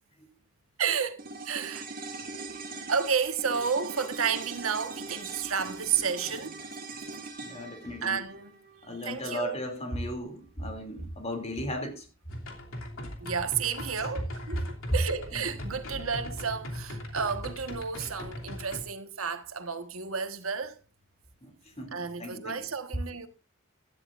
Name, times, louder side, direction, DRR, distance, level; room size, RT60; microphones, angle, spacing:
voice 1, 0.8-1.9 2.9-6.6 6.9-7.1 8.0-8.6 9.0-9.5 13.2-14.7 14.9-20.8 21.9-23.3, right 6 dB, 85° right, 1.4 m, -31 dB
sound 1, 1.2-9.7 9.9-10.0, right 3 dB, 45° right, 2.2 m, -41 dB
voice 2, 7.4-8.2 8.8-12.1 14.0-14.1 15.3-15.4 21.4-22.7, left 1 dB, 30° left, 2.8 m, -37 dB
sound 2, 12.3-18.8, left 1 dB, 80° left, 2.9 m, -39 dB
16.5 x 12.5 x 2.6 m
head